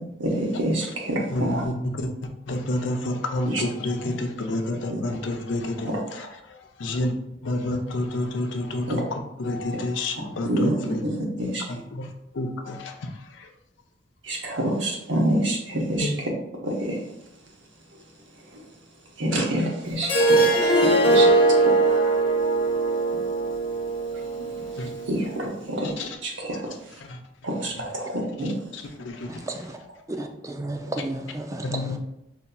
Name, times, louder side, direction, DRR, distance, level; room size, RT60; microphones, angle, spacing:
voice 1, 0.2-1.6 3.5-3.6 4.9-5.0 5.8-6.0 8.9-9.0 10.4-11.6 14.3-16.3 16.6-16.9 19.2-21.3 21.7-22.0 25.1-25.9 26.2-26.6 27.4-28.5, right 1 dB, 75° right, -1 dB, 0.9 m, -27 dB
voice 2, 1.3-2.1 2.5-7.1 7.4-11.0 11.7-12.1 12.3-13.5 16.0-16.1 24.8-24.9 25.8-26.2 27.0-27.2 28.7-29.4 31.6-32.0, left 1 dB, 80° left, 5 dB, 0.5 m, -29 dB
Harp, 20.0-25.2, right 2 dB, 25° left, 0.6 m, -21 dB
voice 3, 30.1-32.0, right 2 dB, 15° right, 4 dB, 0.3 m, -32 dB
5.3 x 2.7 x 2.2 m, 0.84 s
head